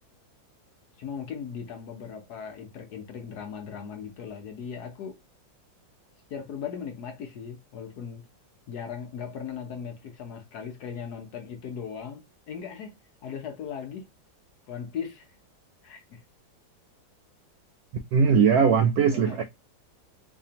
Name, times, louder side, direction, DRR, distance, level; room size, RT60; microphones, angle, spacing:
voice 1, 1.0-5.2 6.3-8.3 8.7-13.0 13.2-14.1 14.7-15.3 15.8-16.2 19.1-19.4, left 7 dB, 65° left, 1.1 m, -38 dB
voice 2, 18.1-19.4, right 6 dB, 75° right, 0.9 m, -20 dB
4.1 x 2.7 x 2.8 m
omnidirectional pair, 2.1 m